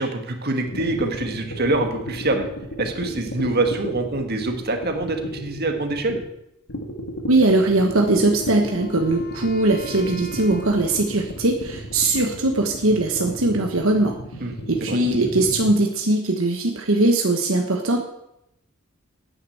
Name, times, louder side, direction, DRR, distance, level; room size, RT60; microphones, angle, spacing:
voice 1, 0.0-2.4 2.8-6.2 14.4-14.5 14.8-15.0, right 2 dB, 45° right, 5 dB, 1.7 m, -25 dB
sound 1, 0.6-6.3 6.7-15.7, equal, 75° left, 2.1 m, -34 dB
voice 2, 7.2-14.2 14.7-18.0, right 2 dB, 65° right, 3 dB, 1.3 m, -20 dB
Wind instrument woodwind instrument, 8.0-12.1, equal, 45° left, 1.2 m, -42 dB
9.9 x 9.7 x 7.9 m, 0.83 s
head